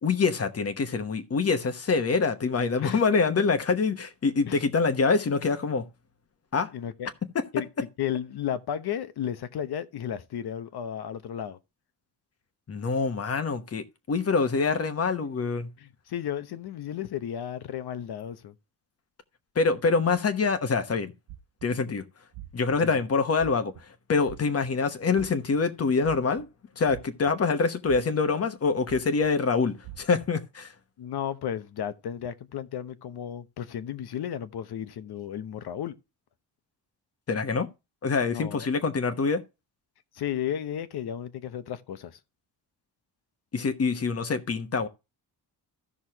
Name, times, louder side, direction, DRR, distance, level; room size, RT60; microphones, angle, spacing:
voice 1, 0.0-5.8 6.5-6.7 7.3-7.4 12.7-15.7 19.5-21.1 21.6-22.0 22.5-23.7 24.1-26.5 26.8-30.7 37.3-37.7 38.0-39.4 43.5-44.9, left 4 dB, 35° left, 1.1 m, -25 dB
voice 2, 6.7-7.1 7.5-7.7 8.0-11.6 15.8-18.5 22.8-23.0 31.0-36.0 38.3-38.7 40.1-42.2, left 9 dB, 70° left, 1.0 m, -33 dB
sound 1, 21.3-21.8 22.3-22.8 23.4-23.8 24.2-24.7 25.1-25.6 26.0-26.5 26.9-27.5 27.9-28.3 28.9-29.3 29.8-30.3, right 15 dB, 90° right, 0.9 m, -44 dB
15.0 x 6.2 x 2.9 m
wide cardioid pair, 160°, 41 cm